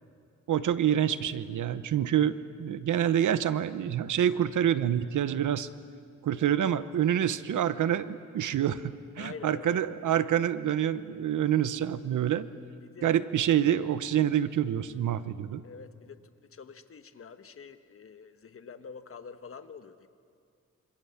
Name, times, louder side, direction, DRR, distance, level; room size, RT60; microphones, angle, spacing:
voice 1, 0.5-5.7 6.2-12.5 13.0-15.6, right 10 dB, 85° right, 13 dB, 1.0 m, -27 dB
voice 2, 9.2-9.9 12.8-13.2 15.6-16.2 16.5-20.1, left 5 dB, 45° left, 9 dB, 1.4 m, -46 dB
26.5 x 26.0 x 7.2 m, 2.3 s
wide cardioid pair, 115°, 30 cm